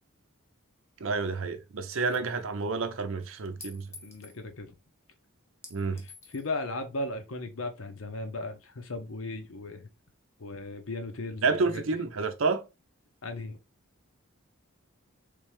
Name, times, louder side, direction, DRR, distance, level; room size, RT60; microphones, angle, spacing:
voice 1, 1.0-3.9 5.7-6.0 11.4-12.7, right 4 dB, 65° right, 0.6 m, -29 dB
Chink clink, 3.6-4.4 5.6-6.5, left 4 dB, 15° left, 0.6 m, -48 dB
voice 2, 4.0-4.7 5.9-9.9 10.4-11.8 13.2-13.6, left 2 dB, 70° left, 0.8 m, -37 dB
3.5 x 3.3 x 3.2 m
head